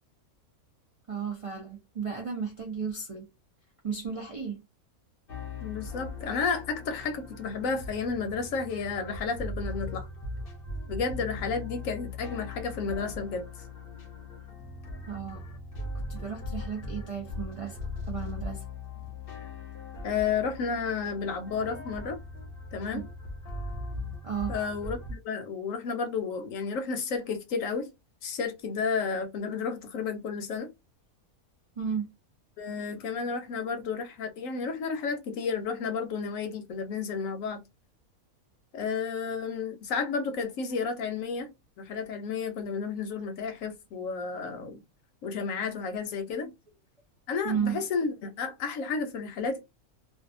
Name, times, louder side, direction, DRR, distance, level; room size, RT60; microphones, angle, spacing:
voice 1, 1.1-3.3 3.8-4.6 15.1-15.4 16.1-17.8 18.1-18.6 24.2-24.5 31.8-32.1 47.4-47.8, right 6 dB, 60° right, 0.3 m, -33 dB
sound 1, 5.3-25.1, left 2 dB, 50° left, 0.7 m, -39 dB
voice 2, 5.6-10.1 10.9-13.5 20.0-22.2 22.7-23.0 24.5-27.9 28.2-30.7 32.6-37.6 38.7-44.8 45.2-46.5 47.3-49.6, left 5 dB, 70° left, 1.0 m, -32 dB
2.6 x 2.2 x 2.5 m
omnidirectional pair, 1.5 m